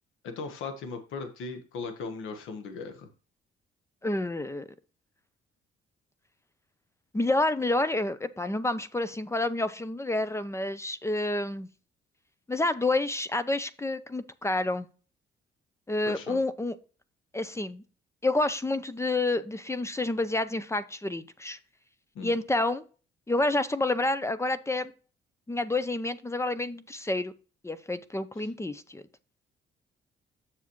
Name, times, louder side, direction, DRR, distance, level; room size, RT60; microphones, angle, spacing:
voice 1, 0.2-3.1 16.0-16.4 22.1-22.4 28.4-28.5, left 4 dB, 85° left, 7 dB, 1.3 m, -38 dB
voice 2, 4.0-4.7 7.1-11.7 12.5-14.9 15.9-16.8 17.3-17.8 18.2-21.6 22.2-22.8 23.3-24.9 25.5-27.3 27.6-29.0, left 2 dB, 15° left, 14 dB, 0.6 m, -29 dB
7.2 x 7.1 x 3.1 m, 0.37 s
cardioid pair, 90°, 20 cm